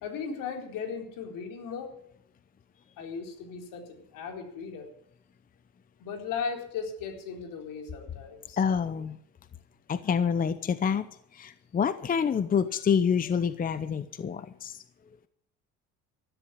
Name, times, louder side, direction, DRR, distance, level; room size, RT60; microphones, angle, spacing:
voice 1, 0.0-1.9 3.0-4.9 6.0-8.6, left 6 dB, 70° left, 4 dB, 4.0 m, -37 dB
voice 2, 8.6-9.2 9.9-14.8, left 7 dB, 25° left, 13 dB, 0.7 m, -27 dB
13.5 x 13.0 x 7.1 m, 0.69 s
cardioid pair, 125°, 33 cm